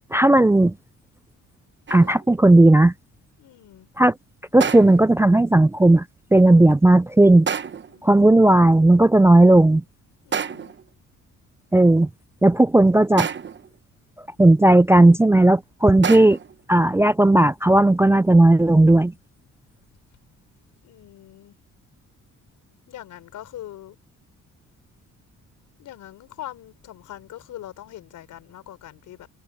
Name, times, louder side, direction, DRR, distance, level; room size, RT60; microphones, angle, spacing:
voice 1, 0.1-0.8 1.9-2.9 4.0-4.2 4.5-6.1 6.3-7.5 8.0-9.8 11.7-12.1 12.4-13.3 14.4-16.4 16.7-19.1, right 2 dB, 10° right, 0.4 m, -15 dB
sound 1, 1.9-2.3 4.6-5.2 7.5-8.0 10.3-10.9 13.2-13.7 16.0-16.6, right 7 dB, 40° right, 1.2 m, -29 dB
voice 2, 3.4-3.9 7.9-8.3 10.2-10.7 20.8-21.5 22.9-24.0 25.8-29.3, left 12 dB, 80° left, 4.3 m, -42 dB
cardioid pair, 90°, 30 cm